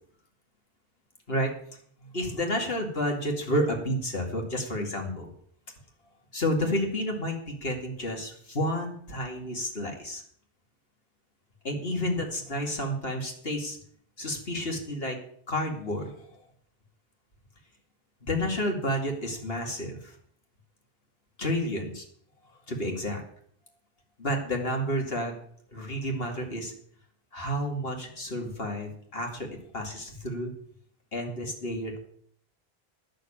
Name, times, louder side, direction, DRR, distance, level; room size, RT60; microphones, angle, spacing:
voice 1, 2.0-5.3 6.3-10.2 11.6-13.8 14.2-15.2 15.5-16.3 18.3-20.2 21.4-22.0 22.7-23.2 24.2-25.3 25.7-26.7 27.3-29.5 29.7-30.5 31.1-32.0, equal, 70° left, 2 dB, 2.7 m, -30 dB
11.5 x 6.8 x 8.8 m, 0.63 s
omnidirectional pair, 1.0 m